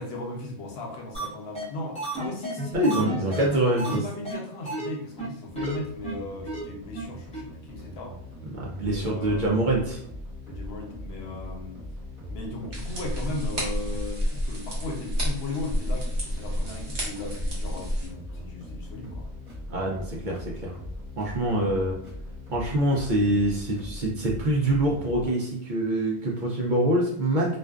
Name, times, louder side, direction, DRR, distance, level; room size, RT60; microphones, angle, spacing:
voice 1, 0.0-3.2 3.7-8.2 8.8-9.6 10.5-11.8 12.3-19.3, left 2 dB, 75° left, 0 dB, 0.8 m, -36 dB
sound 1, 1.1-1.2 1.5-1.6 1.9-4.0 4.2-4.4 4.7-4.9 5.2-5.3 5.6-5.7 6.0-6.1 6.5-6.6 6.9-7.0 7.3-7.4, right 2 dB, 5° left, 0.6 m, -32 dB
voice 2, 2.7-4.0 8.5-10.0 19.7-20.8 21.2-22.0 22.5-27.6, right 1 dB, 55° right, -2 dB, 0.6 m, -25 dB
sonic multiplayer loop, 5.4-25.3, left 1 dB, 40° right, 1.1 m, -40 dB
Egg cooking, 12.7-18.1, equal, 75° right, 1.1 m, -30 dB
2.5 x 2.2 x 2.3 m, 0.67 s
omnidirectional pair, 1.1 m